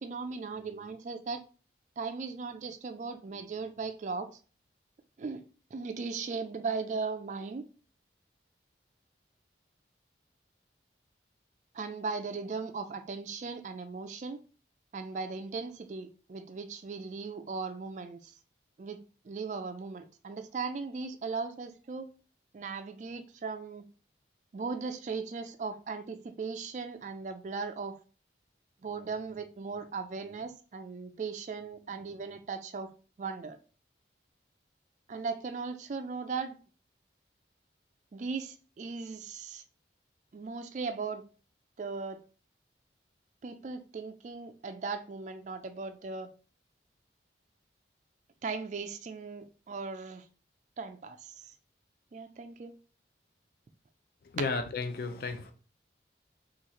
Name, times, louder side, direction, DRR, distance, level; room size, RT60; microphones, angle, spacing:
voice 1, 0.0-1.4 2.0-4.3 5.2-5.4 5.7-7.7 11.7-14.4 14.9-18.4 18.8-22.1 22.5-23.9 24.5-28.0 28.8-32.9 33.2-33.6 35.1-36.6 38.1-39.6 40.3-41.2 41.8-42.2 43.4-46.3 48.4-50.3 50.8-51.5 52.1-52.7, right 4 dB, 40° right, 0.3 m, -38 dB
voice 2, 54.3-55.5, left 4 dB, 50° left, 0.4 m, -33 dB
3.8 x 2.4 x 2.9 m
head